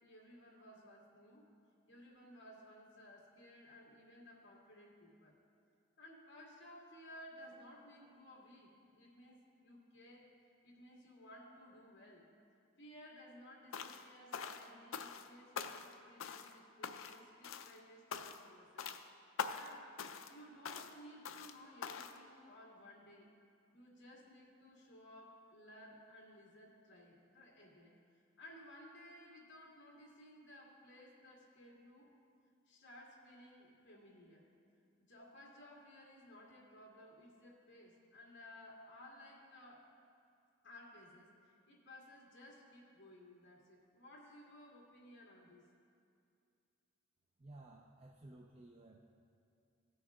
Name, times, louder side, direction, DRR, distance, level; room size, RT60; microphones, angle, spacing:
voice 1, 0.0-1.5 1.9-5.3 6.0-10.3 10.6-12.3 12.8-18.9 19.5-20.0 20.3-23.3 23.7-28.0 28.4-32.1 32.7-34.5 35.0-39.9 40.6-45.7, left 1 dB, 60° left, -3 dB, 2.3 m, -58 dB
sound 1, 13.7-14.1 14.3-15.3 15.6-15.9 16.2-16.6 16.8-17.2 17.4-17.8 18.1-18.5 18.8-19.0 19.4-19.7 20.0-20.3 20.7-20.9 21.3-21.5 21.8-22.2, left 6 dB, 75° left, 0.5 m, -44 dB
voice 2, 47.4-49.0, right 2 dB, 30° right, 0 dB, 0.5 m, -56 dB
16.5 x 6.3 x 3.6 m, 2.5 s
head